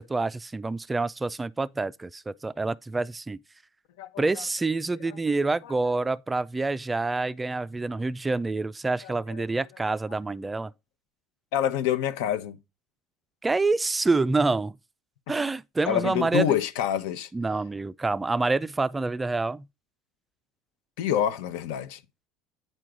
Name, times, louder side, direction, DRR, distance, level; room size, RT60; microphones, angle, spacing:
voice 1, 0.0-3.4 4.2-10.7 13.4-14.8 15.3-16.5 17.3-19.7, right 3 dB, 10° right, 0.3 m, -27 dB
voice 2, 4.0-4.4 5.4-5.8 9.0-9.1 11.5-12.6 15.9-17.3 21.0-22.0, left 10 dB, 80° left, 1.0 m, -27 dB
9.1 x 4.6 x 3.8 m
cardioid pair, 155°, 0 cm